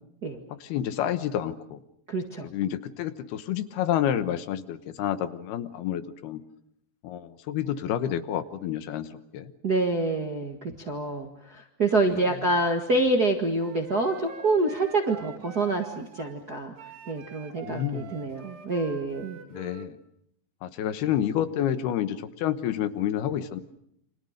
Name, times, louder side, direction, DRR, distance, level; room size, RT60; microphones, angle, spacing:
voice 1, 0.6-1.8 2.4-6.4 7.0-9.1 9.3-9.5 12.1-12.2 17.6-18.1 19.5-20.0 20.6-23.6, left 10 dB, 75° left, 11 dB, 3.0 m, -29 dB
voice 2, 2.1-2.5 9.6-16.7 17.1-19.4, right 2 dB, 45° right, 3 dB, 1.3 m, -27 dB
Wind instrument woodwind instrument, 13.6-16.4 16.8-19.9, right 5 dB, 80° right, 4.3 m, -45 dB
29.0 x 26.0 x 6.6 m, 0.75 s
omnidirectional pair, 4.6 m